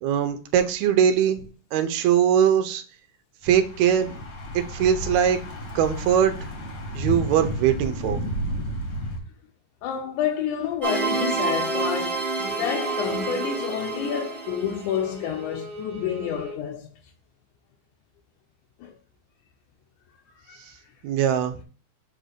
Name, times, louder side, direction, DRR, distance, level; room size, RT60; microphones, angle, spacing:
voice 1, 0.0-1.4 1.7-2.8 3.4-4.1 4.5-5.4 5.8-6.3 6.9-8.2 21.0-21.5, right 9 dB, 75° right, 1.9 m, -21 dB
Thunder / Bicycle, 3.4-9.2, equal, 55° left, 1.3 m, -32 dB
voice 2, 9.8-17.0 18.8-18.9 20.5-20.7, left 9 dB, 80° left, 2.1 m, -29 dB
sound 1, 10.8-15.0, right 4 dB, ahead, 0.6 m, -28 dB
Bowed string instrument, 12.4-16.6, right 2 dB, 55° right, 1.7 m, -37 dB
7.3 x 2.6 x 5.0 m
omnidirectional pair, 3.6 m